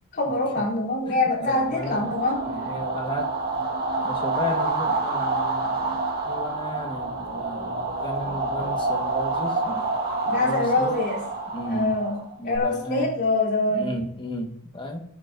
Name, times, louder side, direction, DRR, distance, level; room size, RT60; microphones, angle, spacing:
voice 1, 0.1-2.4 10.3-11.2 11.7-12.2 12.4-13.9, left 2 dB, 50° left, -4 dB, 3.6 m, -24 dB
voice 2, 1.1-2.2 2.4-3.4 4.0-9.9 10.2-10.9 11.5-12.1 12.4-13.1 13.7-15.0, left 1 dB, 25° left, 2 dB, 1.6 m, -34 dB
sound 1, 1.4-12.6, right 3 dB, 45° right, 1.8 m, -28 dB
18.5 x 8.9 x 2.7 m, 0.70 s
head